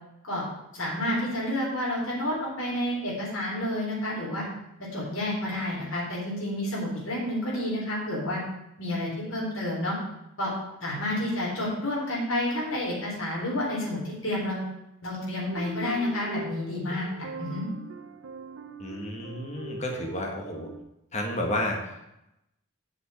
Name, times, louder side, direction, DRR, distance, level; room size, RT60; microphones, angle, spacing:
voice 1, 0.7-4.5 4.9-8.4 8.8-10.0 10.4-10.5 10.8-14.6 15.0-17.7, left 1 dB, 65° left, -5 dB, 4.0 m, -30 dB
sound 1, 15.5-20.8, right 2 dB, 65° right, 0.8 m, -41 dB
voice 2, 18.8-20.7 21.1-22.1, left 1 dB, 30° left, 1 dB, 1.7 m, -31 dB
7.5 x 6.0 x 7.7 m, 0.86 s
head